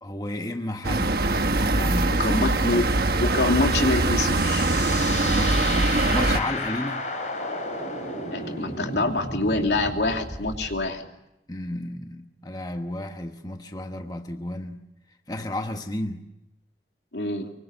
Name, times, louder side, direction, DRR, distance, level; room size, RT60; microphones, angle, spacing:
voice 1, 0.0-1.3 1.7-2.9 5.1-7.1 11.5-14.9 15.3-16.3, left 1 dB, 20° left, 1.1 m, -33 dB
sound 1, 0.8-6.4, right 2 dB, 55° right, 1.3 m, -22 dB
voice 2, 2.2-2.9 3.2-4.7 8.3-11.1 17.1-17.5, left 2 dB, 75° left, 2.8 m, -25 dB
sound 2, 3.6-10.8, left 2 dB, 40° left, 6.2 m, -33 dB
25.0 x 24.0 x 7.8 m
head